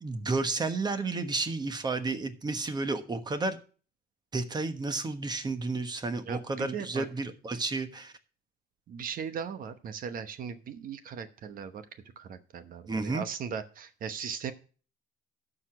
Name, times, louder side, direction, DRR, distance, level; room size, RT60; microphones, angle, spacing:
voice 1, 0.0-3.6 4.3-8.1 12.9-13.2, right 3 dB, 25° right, 9 dB, 1.2 m, -31 dB
voice 2, 6.3-7.1 8.9-11.8 12.2-14.5, right 7 dB, 55° right, 11 dB, 1.0 m, -38 dB
12.5 x 5.0 x 6.0 m, 0.38 s
cardioid pair, 110°, 17 cm